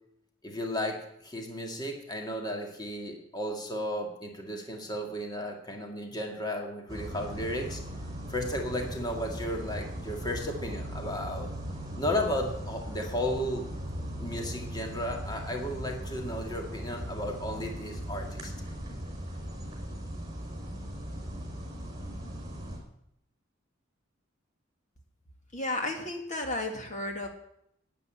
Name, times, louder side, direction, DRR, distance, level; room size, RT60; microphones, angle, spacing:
voice 1, 0.4-7.8 8.3-11.5 12.0-13.7 14.0-18.5, left 1 dB, 20° left, 2 dB, 1.9 m, -34 dB
sound 1, 6.9-22.8, equal, 20° right, 4.2 m, -38 dB
voice 2, 25.5-27.3, left 2 dB, 40° left, 3 dB, 1.9 m, -33 dB
12.0 x 9.5 x 8.7 m, 0.77 s
head